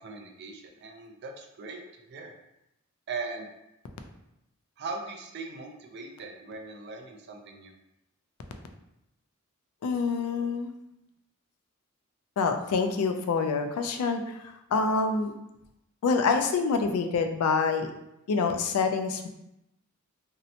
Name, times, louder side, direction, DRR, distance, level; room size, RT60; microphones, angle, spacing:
voice 1, 0.0-1.8 2.1-2.3 3.1-3.5 4.8-7.7, right 4 dB, 50° right, 2 dB, 0.4 m, -39 dB
voice 2, 9.8-10.7 12.4-15.3 16.0-17.9 18.3-19.3, left 4 dB, 90° left, 6 dB, 0.3 m, -26 dB
2.7 x 2.1 x 2.7 m, 0.84 s
head